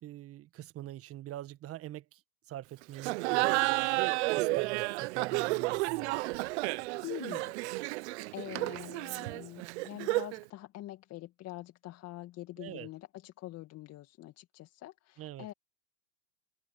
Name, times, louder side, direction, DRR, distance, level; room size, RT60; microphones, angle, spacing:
voice 1, 0.0-2.2 2.5-4.0 4.3-6.2 12.6-12.9 15.2-15.5, right 14 dB, 35° right, 1.7 m, -44 dB
Laughter, 3.0-10.4, right 23 dB, 50° right, 0.7 m, -31 dB
voice 2, 7.0-7.5 8.0-15.5, left 15 dB, 35° left, 2.1 m, -45 dB
hypercardioid pair, 105°, 42 cm